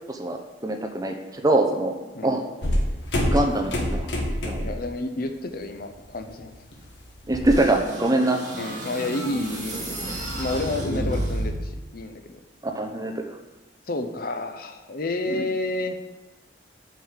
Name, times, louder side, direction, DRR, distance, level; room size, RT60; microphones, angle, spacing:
voice 1, 0.1-1.9 2.2-2.4 3.2-4.1 4.4-4.7 7.3-8.4 10.9-11.1 12.7-13.1 15.3-15.4, right 2 dB, 20° right, 4 dB, 0.9 m, -24 dB
voice 2, 2.1-2.5 4.6-6.5 8.6-10.1 10.4-12.2 13.9-15.9, left 2 dB, 50° left, 7 dB, 0.7 m, -30 dB
sound 1, 2.6-4.8 5.2-5.5 5.9-7.6, equal, 70° left, 1.6 m, -26 dB
sound 2, 7.5-11.8, right 1 dB, 40° right, 2.0 m, -31 dB
7.4 x 5.3 x 7.4 m, 1.1 s
head